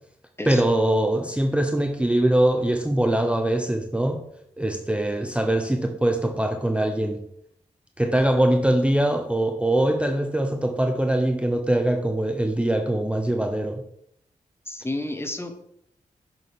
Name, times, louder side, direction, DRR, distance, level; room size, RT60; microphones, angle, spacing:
voice 1, 0.5-4.2 4.6-7.2 8.0-13.8, right 1 dB, 10° right, 0.7 m, -22 dB
voice 2, 14.7-15.7, left 1 dB, 15° left, 1.1 m, -31 dB
6.7 x 6.2 x 3.6 m
cardioid pair, 50°, 14 cm